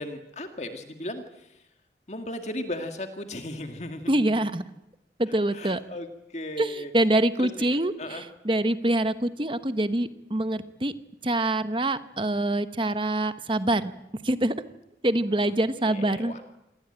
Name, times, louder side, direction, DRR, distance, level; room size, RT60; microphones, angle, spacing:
voice 1, 0.0-1.7 2.1-4.4 5.3-6.9 7.4-8.2 15.4-15.5 15.8-16.4, left 1 dB, 40° left, 6 dB, 1.9 m, -37 dB
voice 2, 4.1-4.6 5.2-5.8 6.6-6.7 6.9-8.2 8.4-10.9 11.2-13.9 14.2-14.5 15.0-16.3, right 1 dB, 30° right, 11 dB, 1.1 m, -25 dB
27.5 x 20.0 x 8.9 m, 0.89 s
head